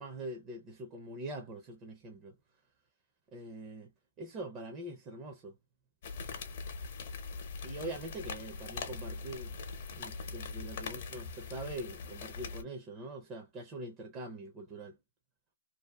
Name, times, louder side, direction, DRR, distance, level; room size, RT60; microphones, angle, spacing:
voice 1, 0.0-2.4 3.3-3.9 4.2-5.6 7.6-9.6 10.0-15.0, right 1 dB, 20° right, 0.5 m, -43 dB
sound 1, 6.0-12.6, left 4 dB, 45° left, 0.8 m, -42 dB
2.6 x 2.4 x 2.3 m
hypercardioid pair, 155°, 0 cm